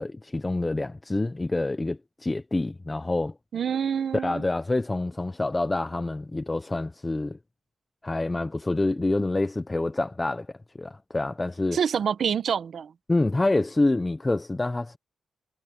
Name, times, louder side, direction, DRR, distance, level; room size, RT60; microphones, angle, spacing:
voice 1, 0.0-3.3 4.1-7.4 8.0-11.8 13.1-15.0, left 2 dB, 15° left, 0.7 m, -27 dB
voice 2, 3.5-4.4 11.7-12.9, right 7 dB, 60° right, 1.1 m, -26 dB
cardioid pair, 125°, 0 cm